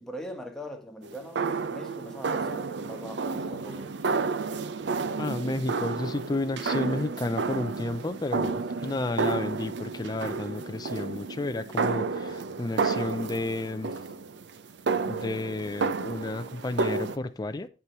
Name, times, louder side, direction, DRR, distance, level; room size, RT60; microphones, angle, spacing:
voice 1, 0.0-3.9, equal, 5° left, 1.1 m, -41 dB
sound 1, 1.0-17.2, right 4 dB, 75° right, 0.5 m, -31 dB
voice 2, 5.2-13.9 15.1-17.7, left 2 dB, 20° left, 0.4 m, -32 dB
8.2 x 5.7 x 4.3 m
head